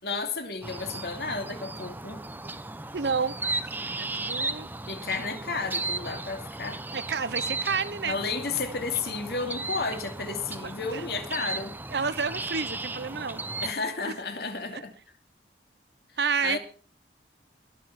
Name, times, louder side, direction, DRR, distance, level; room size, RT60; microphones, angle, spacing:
voice 1, 0.0-2.2 4.9-6.8 8.0-11.7 13.6-14.9 16.4-16.6, left 4 dB, 60° left, 2.7 m, -32 dB
sound 1, 0.6-13.7, right 2 dB, 10° right, 0.7 m, -35 dB
voice 2, 2.9-4.7 6.9-8.2 10.6-11.1 11.9-13.4 14.1-14.2 14.7-14.8 16.2-16.6, right 5 dB, 75° right, 0.9 m, -30 dB
21.5 x 7.2 x 5.9 m
head